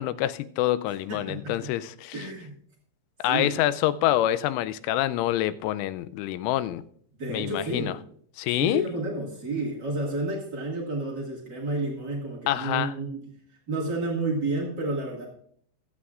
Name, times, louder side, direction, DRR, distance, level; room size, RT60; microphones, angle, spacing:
voice 1, 0.0-2.3 3.2-6.8 7.3-7.9 8.4-8.8 12.5-12.9, left 13 dB, 90° left, 3.1 m, -26 dB
voice 2, 1.1-1.7 2.1-2.5 3.2-3.6 7.2-7.9 8.5-13.3 13.7-15.2, right 2 dB, 70° right, 1.0 m, -30 dB
25.0 x 8.4 x 2.5 m
omnidirectional pair, 5.5 m